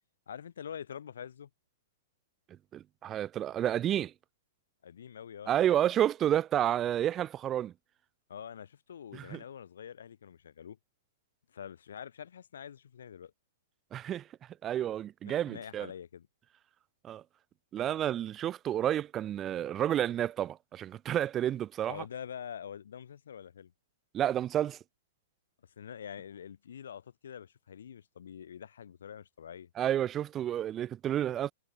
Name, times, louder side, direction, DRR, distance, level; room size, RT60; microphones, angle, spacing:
voice 1, 0.3-1.5 4.8-5.5 8.3-10.8 11.5-13.3 15.2-16.3 21.9-23.7 25.8-29.7, left 8 dB, 65° left, 1.6 m, -45 dB
voice 2, 2.7-4.1 5.5-7.7 9.1-9.4 13.9-14.2 14.6-15.9 17.0-17.2 17.7-22.0 24.1-24.8 29.8-31.5, right 11 dB, 25° right, 0.3 m, -30 dB
figure-of-eight pair, 110°, 0 cm